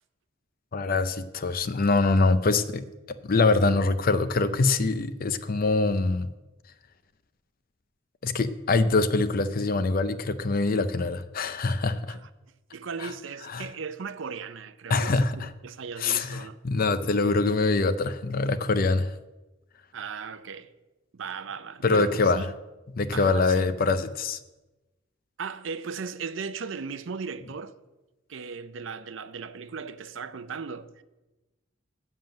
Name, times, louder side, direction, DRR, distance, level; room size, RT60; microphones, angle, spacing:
voice 1, 0.7-6.3 8.2-12.2 13.0-13.1 13.5-13.7 14.9-15.5 16.0-19.1 21.8-22.4 23.0-24.4, left 3 dB, 45° left, 0.5 m, -24 dB
voice 2, 12.7-16.6 19.9-20.7 21.1-22.5 23.1-23.7 25.4-27.8 28.3-31.0, right 5 dB, 70° right, 0.5 m, -37 dB
7.5 x 7.4 x 7.7 m
head